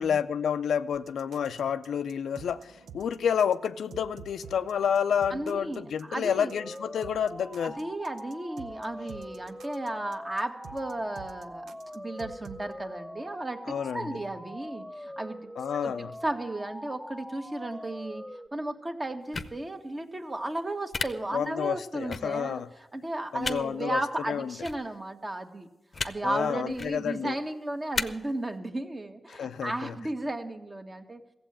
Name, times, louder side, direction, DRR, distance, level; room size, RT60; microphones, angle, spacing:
voice 1, 0.0-7.7 13.7-14.2 15.6-16.1 21.3-22.7 23.3-24.0 24.3-24.6 26.2-27.4 29.3-29.9, left 8 dB, 85° left, 0.4 m, -29 dB
sound 1, 0.9-12.7, right 6 dB, 90° right, 0.6 m, -50 dB
voice 2, 5.3-6.5 7.6-15.5 15.8-22.6 22.9-25.7 26.0-31.2, right 1 dB, 30° right, 1.4 m, -34 dB
sound 2, 6.5-18.5, equal, 5° left, 0.7 m, -43 dB
sound 3, 19.3-19.5 20.9-21.1 22.1-22.2 23.4-23.6 24.6-24.8 25.9-26.1 26.7-26.9 27.9-28.0, left 4 dB, 50° left, 0.7 m, -31 dB
15.0 x 7.7 x 8.7 m
cardioid pair, 65°, 0 cm